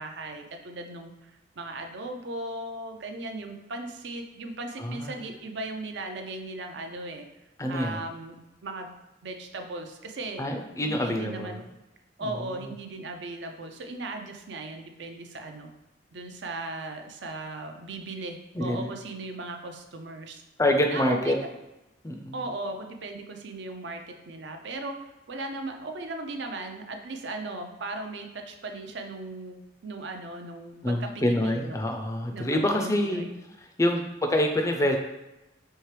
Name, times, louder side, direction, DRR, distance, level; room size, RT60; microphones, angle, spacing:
voice 1, 0.0-7.3 7.7-8.9 9.2-10.4 10.8-11.6 12.2-15.7 16.1-20.4 20.9-21.4 22.3-31.8 32.3-33.3 33.8-34.1, right 2 dB, 60° right, 5 dB, 0.5 m, -37 dB
voice 2, 4.8-5.2 7.6-8.0 10.4-11.6 12.2-12.3 18.5-18.9 20.6-21.3 22.0-22.4 30.8-33.2 33.8-35.0, left 1 dB, 15° left, 4 dB, 0.4 m, -26 dB
4.5 x 3.3 x 3.2 m, 1.0 s
head